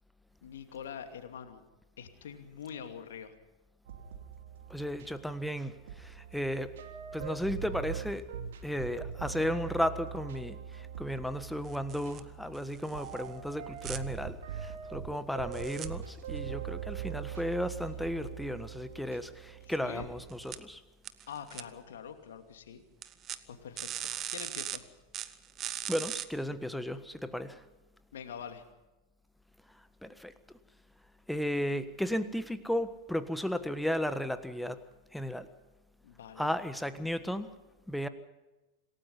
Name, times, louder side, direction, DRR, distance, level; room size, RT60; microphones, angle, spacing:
voice 1, 0.4-1.6 2.0-3.3 19.6-20.1 21.3-22.8 23.5-23.9 24.3-24.8 28.1-28.6 36.0-36.5, left 7 dB, 60° left, 7 dB, 2.7 m, -44 dB
sound 1, 3.9-20.6, right 8 dB, 60° right, 2.6 m, -42 dB
voice 2, 4.7-6.7 7.1-8.2 8.6-20.8 25.9-27.6 30.0-30.3 31.3-34.8 35.1-35.5 36.4-37.5 37.9-38.1, equal, ahead, 12 dB, 1.4 m, -34 dB
sound 2, 11.6-12.2 12.5-13.2 13.8-14.0 15.5-15.9 20.3-20.6 21.0-21.6 23.0-23.4 23.8-24.8 25.1-26.2, right 11 dB, 30° right, 1.2 m, -39 dB
27.0 x 18.0 x 5.5 m, 1.0 s
figure-of-eight pair, 90°, 0 cm